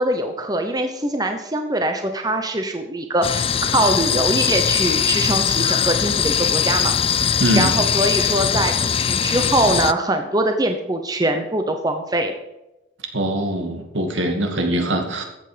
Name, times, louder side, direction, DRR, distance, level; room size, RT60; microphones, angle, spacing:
voice 1, 0.0-6.9 7.2-12.3, right 1 dB, 20° right, 6 dB, 0.9 m, -23 dB
sound 1, 3.2-9.9, left 8 dB, 30° left, 0.3 m, -20 dB
voice 2, 7.4-7.7 13.1-15.2, right 1 dB, 75° right, 3 dB, 2.4 m, -22 dB
14.0 x 8.2 x 5.2 m, 0.95 s
head